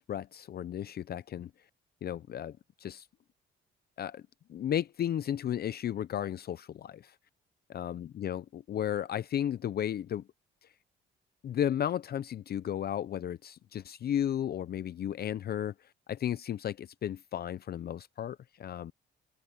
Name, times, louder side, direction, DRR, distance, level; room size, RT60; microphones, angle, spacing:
voice 1, 0.0-1.5 2.0-3.1 4.0-4.2 4.5-7.1 7.7-10.2 11.4-15.7 16.1-18.9, left 10 dB, 50° left, 0.6 m, -34 dB
open air
cardioid pair, 90°, 20 cm